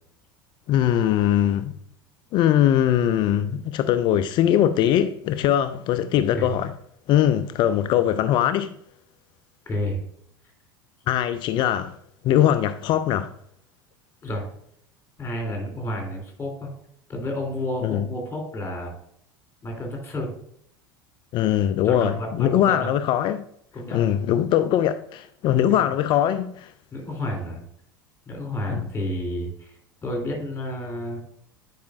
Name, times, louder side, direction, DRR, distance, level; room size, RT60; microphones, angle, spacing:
voice 1, 0.7-1.7 2.3-6.7 7.1-8.7 11.1-12.0 12.2-13.3 17.8-18.1 21.3-23.4 23.9-26.7 28.7-28.8, left 11 dB, 45° left, 0.4 m, -21 dB
voice 2, 9.7-10.0 14.2-14.5 15.2-16.7 17.1-18.9 19.6-20.3 21.8-22.9 23.7-24.1 25.7-25.9 26.9-27.6 28.3-29.7 30.0-31.2, left 1 dB, 20° left, 2.8 m, -30 dB
10.5 x 4.8 x 2.4 m
figure-of-eight pair, 75°, 12 cm